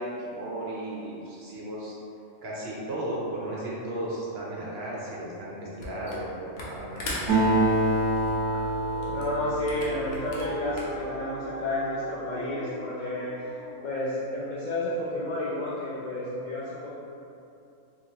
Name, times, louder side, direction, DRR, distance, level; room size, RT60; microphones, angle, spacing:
voice 1, 0.0-1.9 2.4-7.6, right 1 dB, 60° right, -6 dB, 0.8 m, -35 dB
Camera, 5.8-6.3 6.5-11.1, left 2 dB, 80° left, 1.1 m, -39 dB
Acoustic guitar, 7.3-11.1, right 1 dB, 25° right, 1.2 m, -26 dB
Dog, 8.6-14.3, right 1 dB, 90° right, 0.3 m, -39 dB
voice 2, 9.1-16.9, left 2 dB, 65° left, -9 dB, 0.4 m, -31 dB
3.1 x 2.8 x 2.8 m, 2.7 s
omnidirectional pair, 1.4 m